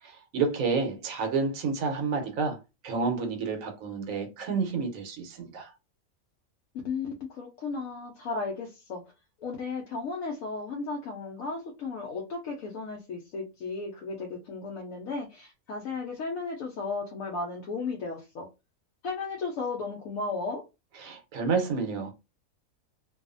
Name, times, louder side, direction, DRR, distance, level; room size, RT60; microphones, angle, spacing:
voice 1, 0.0-2.6 2.8-5.7 21.0-22.1, right 4 dB, 75° right, 1.1 m, -29 dB
voice 2, 6.8-9.0 9.4-18.5 19.0-20.6, left 4 dB, 75° left, 1.1 m, -35 dB
2.6 x 2.4 x 2.4 m
omnidirectional pair, 1.5 m